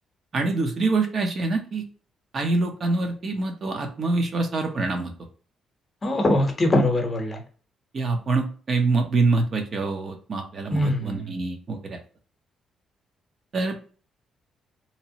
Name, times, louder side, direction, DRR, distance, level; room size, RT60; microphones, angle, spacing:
voice 1, 0.3-1.8 2.3-5.1 7.9-12.0 13.5-13.8, right 3 dB, 50° right, 4 dB, 0.6 m, -25 dB
voice 2, 6.0-7.4 10.7-11.3, left 1 dB, 30° left, 4 dB, 0.8 m, -22 dB
2.8 x 2.0 x 2.8 m, 0.39 s
cardioid pair, 90°, 0 cm